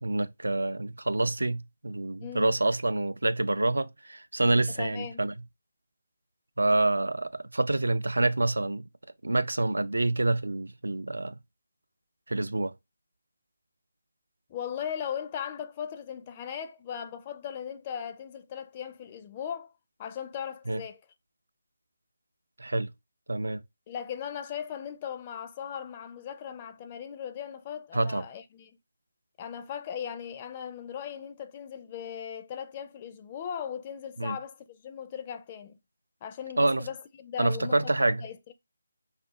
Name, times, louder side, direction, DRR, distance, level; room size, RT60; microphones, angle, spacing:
voice 1, 0.0-5.3 6.6-8.9 9.2-11.3 12.3-12.7 20.7-20.8 22.6-22.9 23.3-23.6 27.9-28.2 34.2-34.4 36.6-36.8 37.4-38.2, right 2 dB, 75° right, 0.4 m, -27 dB
voice 2, 2.2-2.6 4.7-5.2 14.5-19.7 20.0-21.0 23.9-28.8 29.4-35.8 36.2-38.5, left 8 dB, 25° left, 0.4 m, -38 dB
5.2 x 2.4 x 2.6 m
figure-of-eight pair, 155°, 0 cm